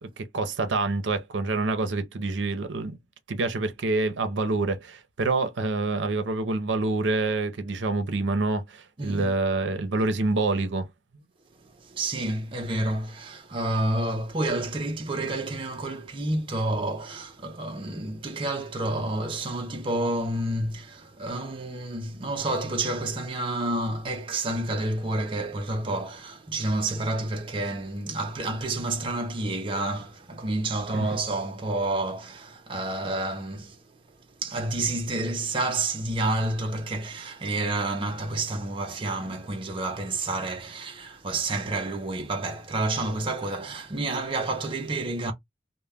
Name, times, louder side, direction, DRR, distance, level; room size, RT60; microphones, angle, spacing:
voice 1, 0.0-3.0 3.3-10.9 30.9-31.1, right 3 dB, 85° right, 0.6 m, -27 dB
voice 2, 9.0-9.3 11.8-33.8 34.4-45.3, right 2 dB, 30° right, 0.5 m, -29 dB
2.1 x 2.1 x 3.3 m
head